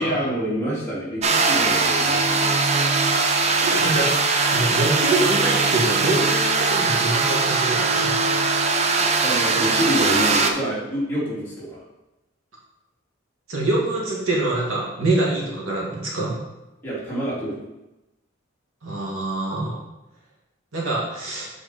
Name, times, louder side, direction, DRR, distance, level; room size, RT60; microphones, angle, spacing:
voice 1, 0.0-2.6 9.0-11.8 16.8-17.6, equal, 10° left, -9 dB, 2.6 m, -27 dB
sound 1, 1.2-10.5, right 4 dB, 30° right, 0.6 m, -20 dB
voice 2, 3.6-4.1 4.5-8.2 13.5-16.4 18.8-19.8 20.7-21.5, right 2 dB, 85° right, -4 dB, 2.2 m, -25 dB
7.5 x 4.7 x 4.2 m, 0.99 s
head